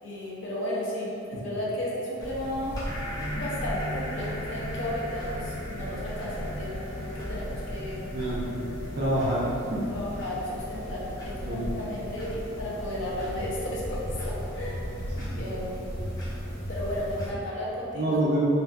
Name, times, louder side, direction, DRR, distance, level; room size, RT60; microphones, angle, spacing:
voice 1, 0.0-2.8 3.3-8.0 9.9-14.9 15.3-16.0 16.7-18.2, left 1 dB, 75° left, -6 dB, 0.6 m, -34 dB
sound 1, 2.2-17.3, equal, 20° left, 0.5 m, -36 dB
sound 2, 2.8-11.8, equal, 50° left, 1.3 m, -40 dB
voice 2, 8.1-8.6 8.9-9.8 11.5-11.7 15.2-15.4 17.9-18.4, right 1 dB, 50° right, -7 dB, 0.4 m, -27 dB
2.6 x 2.2 x 2.3 m, 2.6 s
head